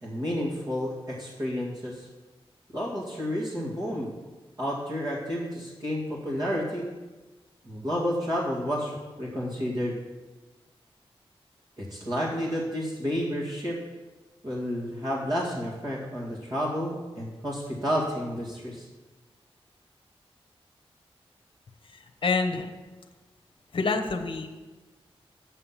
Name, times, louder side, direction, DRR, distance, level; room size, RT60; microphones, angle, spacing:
voice 1, 0.0-2.1 2.7-4.1 4.6-6.9 7.6-10.0 11.8-13.8 14.4-18.9, equal, 40° right, -7 dB, 2.2 m, -30 dB
voice 2, 22.2-22.7 23.7-24.5, left 4 dB, 60° left, 5 dB, 0.9 m, -26 dB
8.9 x 5.7 x 7.4 m, 1.2 s
wide cardioid pair, 75°, 10 cm